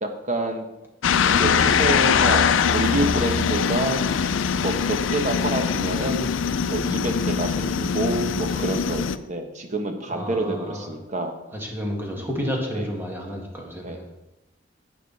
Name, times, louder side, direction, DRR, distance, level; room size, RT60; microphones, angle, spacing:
voice 1, 0.0-0.6 1.3-4.0 4.6-6.4 6.7-11.4 12.7-12.9 13.8-14.0, right 2 dB, 40° right, 5 dB, 1.3 m, -27 dB
sound 1, 1.0-9.2, left 6 dB, 90° left, 0.5 m, -22 dB
voice 2, 10.1-10.9 11.5-14.0, equal, 10° right, -1 dB, 2.1 m, -31 dB
11.5 x 8.4 x 4.2 m, 0.95 s
head